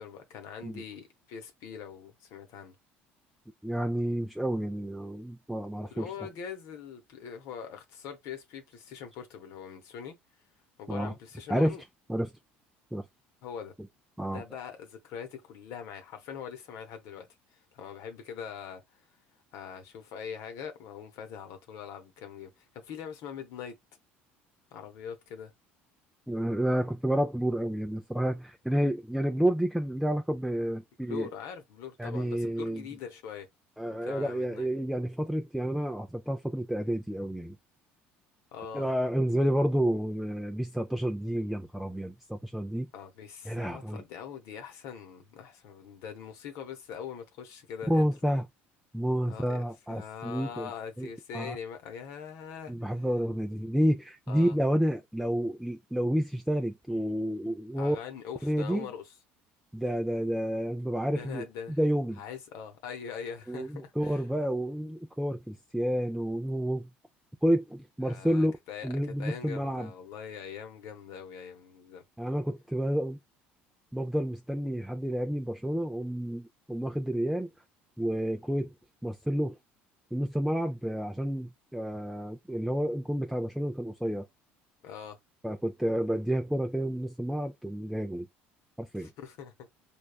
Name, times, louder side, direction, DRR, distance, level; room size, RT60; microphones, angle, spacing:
voice 1, 0.0-2.8 5.9-10.1 10.8-11.8 13.4-13.7 14.3-17.3 17.5-19.0 19.5-23.8 24.7-25.5 31.1-33.5 34.0-34.7 38.5-38.9 42.9-48.1 48.3-48.4 49.3-53.0 54.3-54.6 57.8-59.0 61.1-61.8 62.2-64.2 68.0-68.9 69.2-72.0 84.8-85.2 88.9-89.7, left 7 dB, 65° left, 0.8 m, -42 dB
voice 2, 3.6-6.1 10.9-11.1 11.5-11.8 12.1-12.3 12.9-13.0 14.2-14.4 26.3-31.3 32.0-32.8 33.8-37.6 38.7-42.9 43.5-44.0 47.9-48.4 48.9-50.7 51.0-51.1 51.3-51.6 52.7-58.0 58.4-58.9 59.7-61.4 61.8-62.2 63.5-66.9 67.4-68.5 68.8-69.9 72.2-73.2 73.9-77.5 78.0-78.7 79.0-79.6 80.1-84.3 85.4-88.3 88.8-89.1, equal, ahead, 0.4 m, -30 dB
3.4 x 2.2 x 2.3 m
hypercardioid pair, 70°, 6 cm